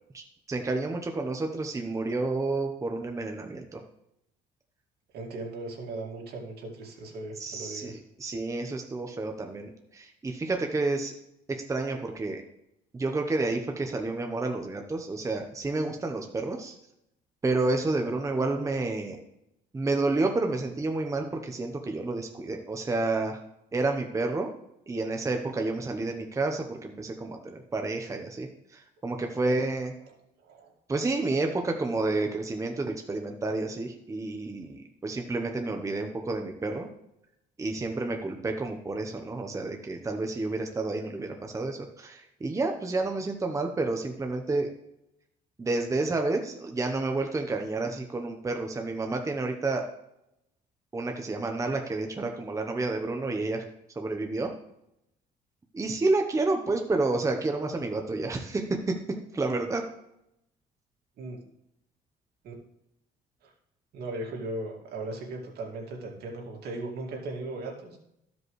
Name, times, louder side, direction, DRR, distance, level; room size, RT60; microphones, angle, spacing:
voice 1, 0.1-3.8 7.4-11.1 11.5-12.4 12.9-16.8 17.4-19.2 19.7-23.4 23.7-24.5 24.9-29.9 30.9-36.9 37.6-44.7 45.6-49.9 50.9-53.6 54.0-54.5 55.7-59.9, right 3 dB, 20° right, 4 dB, 0.9 m, -30 dB
voice 2, 5.1-8.0 29.4-29.6 30.4-30.7 61.2-61.4 62.4-62.5 63.4-63.5 63.9-68.0, right 2 dB, 70° right, 0 dB, 2.3 m, -37 dB
14.5 x 5.2 x 3.2 m, 0.80 s
cardioid pair, 110°, 17 cm